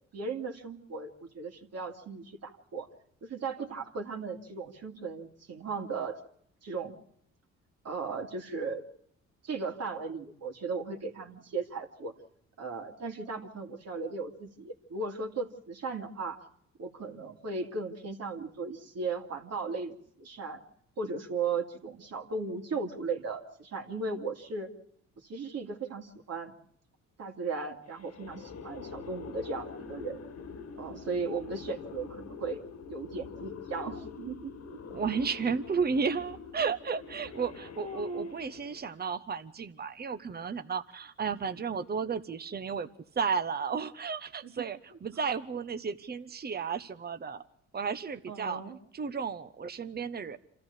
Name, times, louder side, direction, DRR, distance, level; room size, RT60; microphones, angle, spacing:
voice 1, 0.1-2.9 3.2-6.2 6.6-6.9 7.8-8.8 9.4-12.1 12.6-16.4 16.8-20.6 21.0-24.7 25.2-26.5 27.2-30.2 30.7-32.6 32.9-34.8 37.8-38.4 44.4-44.5 48.3-48.8, right 4 dB, 55° right, 1 dB, 2.9 m, -36 dB
sound 1, 27.9-39.0, left 5 dB, 55° left, 1.8 m, -45 dB
voice 2, 34.9-42.9 43.2-47.4 47.7-48.6 48.9-50.4, right 5 dB, 30° right, 10 dB, 1.2 m, -33 dB
27.5 x 14.0 x 8.4 m, 0.71 s
cardioid pair, 90°, 30 cm